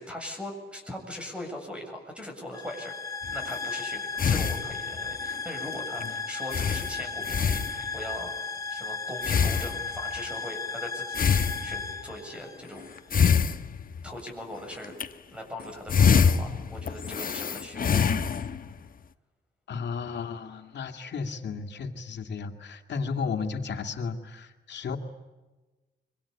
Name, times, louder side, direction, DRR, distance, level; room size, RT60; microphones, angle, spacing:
voice 1, 0.0-11.3 11.6-13.3 14.0-14.9 15.3-18.1, left 1 dB, 5° right, 3 dB, 7.6 m, -40 dB
sound 1, 2.5-13.1, left 4 dB, 20° left, 2.6 m, -35 dB
sound 2, 3.2-3.6 4.2-5.1 5.6-5.8 6.0-6.1 6.5-8.1 9.2-10.2 11.1-12.1 13.0-14.3 14.7-15.1 15.6-18.8, left 6 dB, 55° left, 1.2 m, -25 dB
voice 2, 19.7-25.0, left 5 dB, 80° left, 5 dB, 2.5 m, -34 dB
26.0 x 24.0 x 8.6 m, 1.2 s
wide cardioid pair, 110°, 18 cm